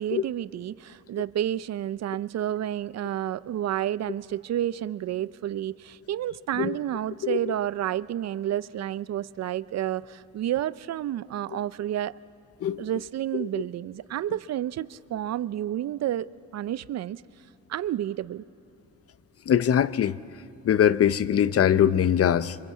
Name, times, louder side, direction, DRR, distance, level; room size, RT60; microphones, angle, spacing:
voice 1, 0.0-12.1 12.8-17.2 17.7-18.4, right 12 dB, 60° right, 0.6 m, -30 dB
voice 2, 7.2-7.5 12.6-12.8 13.4-13.5 19.5-20.2 20.6-22.6, left 9 dB, 50° left, 0.7 m, -22 dB
27.0 x 25.0 x 8.3 m
cardioid pair, 90°, 30 cm